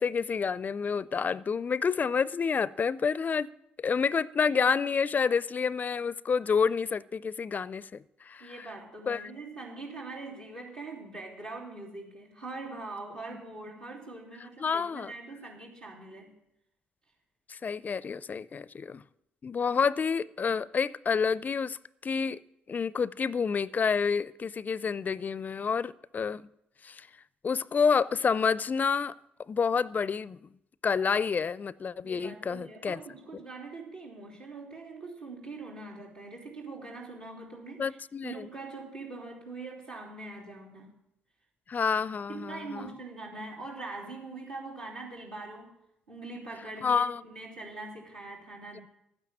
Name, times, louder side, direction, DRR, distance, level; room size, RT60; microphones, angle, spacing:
voice 1, 0.0-3.5 3.8-8.7 9.1-9.3 14.6-15.1 17.5-19.0 19.4-22.4 22.7-26.5 26.8-27.1 27.4-29.1 29.5-30.4 30.8-33.0 37.8-38.5 41.7-42.9 46.8-47.2, left 6 dB, 40° left, 0.4 m, -29 dB
voice 2, 8.4-16.3 32.0-38.0 38.2-40.9 42.3-45.7 46.1-48.8, right 3 dB, 85° right, 3.2 m, -42 dB
12.0 x 9.8 x 7.3 m
hypercardioid pair, 45°, 5 cm